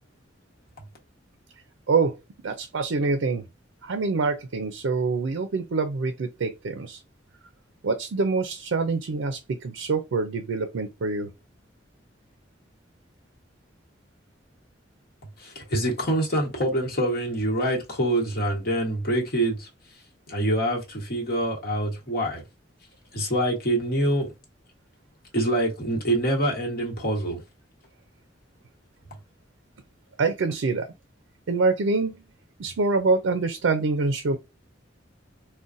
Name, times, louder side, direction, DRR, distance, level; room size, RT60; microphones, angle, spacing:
voice 1, 1.9-2.2 2.4-3.4 3.8-7.0 7.8-11.3 30.2-30.9 31.5-32.1 32.6-34.4, right 4 dB, 90° right, 0.4 m, -25 dB
voice 2, 15.4-19.7 20.3-22.4 23.1-24.3 25.3-27.4, right 1 dB, 55° left, 1.2 m, -25 dB
3.8 x 2.1 x 2.5 m
head